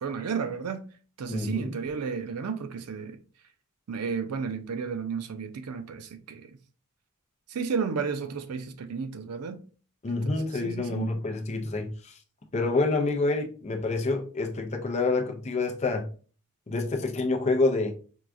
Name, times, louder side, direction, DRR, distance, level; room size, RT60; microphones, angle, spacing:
voice 1, 0.0-0.9 1.2-3.2 3.9-6.5 7.5-9.6 10.1-11.1, right 5 dB, 85° right, 0.5 m, -33 dB
voice 2, 1.3-1.7 10.0-12.2 12.5-16.1 16.7-17.9, left 3 dB, 30° left, 0.5 m, -27 dB
4.5 x 2.3 x 2.5 m
head